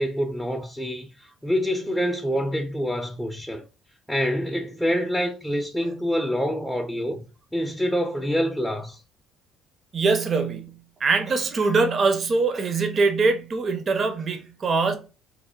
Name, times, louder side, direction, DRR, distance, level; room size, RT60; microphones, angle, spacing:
voice 1, 0.0-3.7 4.1-7.2 7.5-9.0, equal, 5° left, 0.5 m, -26 dB
voice 2, 9.9-15.0, right 4 dB, 45° right, 0.5 m, -23 dB
2.9 x 2.1 x 2.2 m
hypercardioid pair, 55°, 0 cm